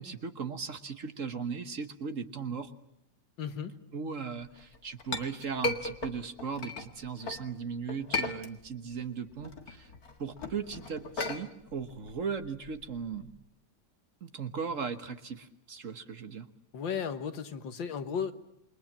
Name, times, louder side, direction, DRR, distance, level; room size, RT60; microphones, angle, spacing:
voice 1, 0.0-2.7 3.9-9.9 10.2-13.3 14.2-16.5, right 6 dB, 45° right, 10 dB, 1.4 m, -37 dB
voice 2, 3.4-3.7 16.7-18.3, left 7 dB, 80° left, 10 dB, 2.1 m, -34 dB
Chink clink, 4.6-7.5 7.9-8.9 9.3-13.4, left 2 dB, 55° left, 2.3 m, -36 dB
28.5 x 23.0 x 7.4 m, 0.81 s
omnidirectional pair, 2.0 m